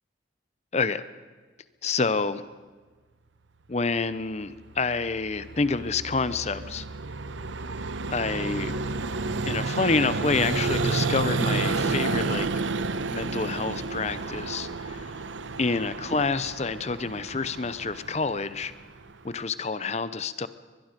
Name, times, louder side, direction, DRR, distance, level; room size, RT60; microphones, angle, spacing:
voice 1, 0.7-1.0 1.8-2.4 3.7-6.9 8.1-8.8 9.5-12.6 13.1-15.2 15.6-18.7 19.2-20.5, left 4 dB, 35° left, 14 dB, 0.6 m, -28 dB
Vehicle, 4.7-19.4, right 3 dB, 90° right, 0.9 m, -31 dB
23.0 x 21.0 x 5.2 m, 1.4 s
head